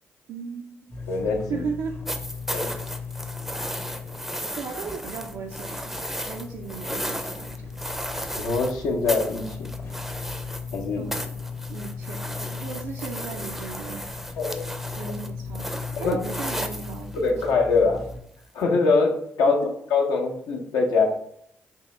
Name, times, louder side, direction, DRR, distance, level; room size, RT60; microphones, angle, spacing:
voice 1, 0.3-1.0 1.5-2.0 2.5-2.8 4.6-7.7 11.0-11.4 11.7-14.1 15.0-17.5 19.5-19.6, right 5 dB, 70° right, 0 dB, 0.4 m, -36 dB
sound 1, 0.9-18.2, left 5 dB, 45° left, 0.8 m, -37 dB
voice 2, 1.1-1.6 2.5-2.7 8.3-9.7 10.7-11.0 14.4-14.7 16.0-16.1 17.1-18.0 18.5-19.6 19.9-21.1, left 4 dB, 80° left, 1 dB, 0.7 m, -23 dB
sound 2, 2.1-8.7 9.1-10.8 11.1-17.4 18.6-18.7, equal, 5° right, 0.5 m, -34 dB
3.6 x 2.8 x 3.1 m, 0.69 s
hypercardioid pair, 45°, 6 cm